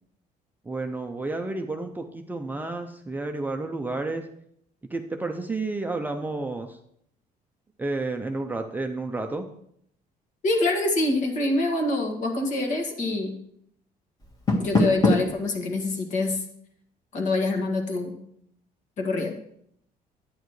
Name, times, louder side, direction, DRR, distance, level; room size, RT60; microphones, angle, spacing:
voice 1, 0.6-4.3 4.9-6.8 7.8-9.4, right 2 dB, 10° right, 4 dB, 0.5 m, -31 dB
voice 2, 10.4-13.4 14.6-16.4 17.1-18.2 19.0-19.3, left 2 dB, 50° left, 3 dB, 1.9 m, -25 dB
Door, 14.2-15.4, left 2 dB, 25° left, 1.6 m, -23 dB
11.0 x 9.3 x 3.2 m, 0.70 s
cardioid pair, 165°, 16 cm